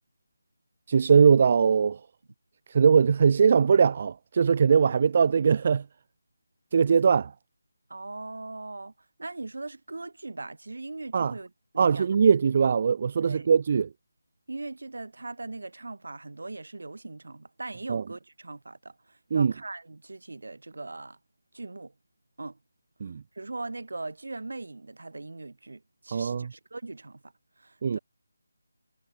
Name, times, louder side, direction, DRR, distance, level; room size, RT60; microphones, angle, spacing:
voice 1, 0.9-2.0 2.7-5.8 6.7-7.3 11.1-11.3 11.8-13.9 17.9-18.0 19.3-19.5 23.0-23.2 26.1-26.5 27.8-28.0, right 6 dB, 40° right, 0.6 m, -21 dB
voice 2, 7.9-8.9 9.2-12.1 13.2-13.5 14.5-21.2 21.5-21.9 22.4-22.6 23.1-28.0, right 2 dB, 70° right, 1.8 m, -40 dB
figure-of-eight pair, 160°, 0 cm